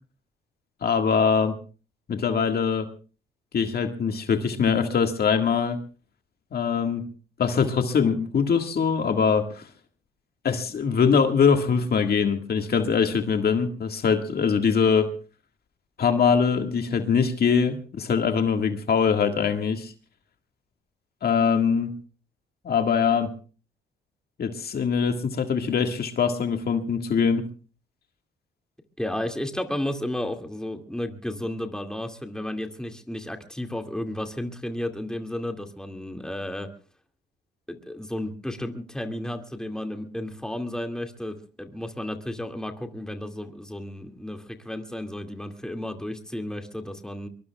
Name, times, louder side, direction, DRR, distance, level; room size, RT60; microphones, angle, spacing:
voice 1, 0.8-1.6 2.1-2.9 3.5-5.8 6.5-7.1 7.4-9.7 10.4-15.1 16.0-19.9 21.2-21.9 22.6-23.3 24.4-27.4, left 6 dB, 50° left, 5 dB, 1.8 m, -23 dB
voice 2, 29.0-36.7 37.7-47.3, left 1 dB, 5° left, 4 dB, 2.2 m, -33 dB
23.0 x 22.5 x 2.3 m, 0.37 s
cardioid pair, 90°, 20 cm